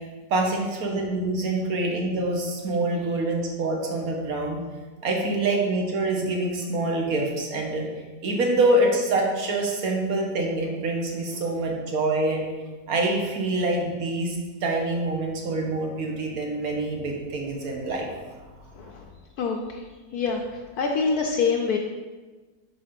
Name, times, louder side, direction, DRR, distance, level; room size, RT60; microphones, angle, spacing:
voice 1, 0.3-4.6 5.0-7.8 8.2-12.4 12.9-14.4 14.6-18.1, right 2 dB, 60° right, 0 dB, 1.5 m, -25 dB
voice 2, 18.7-19.1 19.4-19.9 20.1-21.8, left 5 dB, 70° left, 1 dB, 1.0 m, -26 dB
5.6 x 4.8 x 5.1 m, 1.3 s
omnidirectional pair, 1.8 m